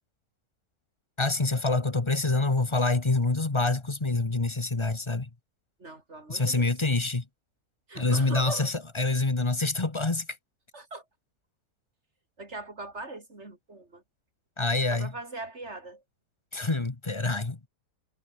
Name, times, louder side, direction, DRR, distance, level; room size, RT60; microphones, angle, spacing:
voice 1, 1.2-5.3 6.3-7.2 7.9-10.3 14.6-15.1 16.5-17.7, left 3 dB, 20° left, 1.3 m, -26 dB
voice 2, 5.8-6.7 7.9-8.7 10.7-11.0 12.4-14.0 14.9-16.0, right 2 dB, 45° right, 4.9 m, -40 dB
omnidirectional pair, 1.6 m